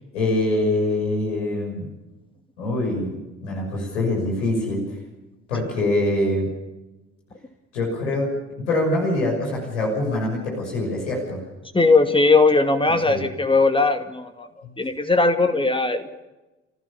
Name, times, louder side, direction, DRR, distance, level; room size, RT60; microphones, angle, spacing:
voice 1, 0.1-1.8 2.6-4.8 5.5-6.5 7.7-8.3 8.7-11.4 13.1-13.2, left 1 dB, 75° left, -2 dB, 6.3 m, -24 dB
voice 2, 11.7-14.5 14.8-16.1, left 3 dB, 15° left, 7 dB, 2.2 m, -19 dB
27.0 x 15.5 x 7.2 m, 1.1 s
figure-of-eight pair, 50°, 36 cm